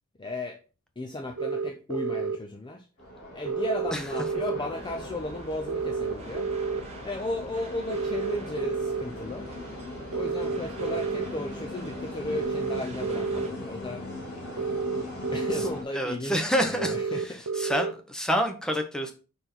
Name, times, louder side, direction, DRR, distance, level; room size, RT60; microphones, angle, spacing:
voice 1, 0.2-0.6 1.0-2.9 3.3-6.7 7.0-9.5 10.1-14.1 14.3-14.4 15.3-17.5, left 1 dB, 20° left, 0.5 m, -35 dB
sound 1, 1.4-2.4 3.5-4.6 5.7-6.8 7.9-9.0 10.1-11.3 12.3-13.5 14.6-15.7 16.8-17.9, right 4 dB, 65° right, 0.7 m, -30 dB
sound 2, 3.0-15.8, left 1 dB, 50° left, 2.4 m, -39 dB
sound 3, 4.7-13.5, right 2 dB, 30° right, 1.1 m, -46 dB
voice 2, 15.9-19.1, equal, 5° left, 0.9 m, -28 dB
5.2 x 4.4 x 4.4 m
head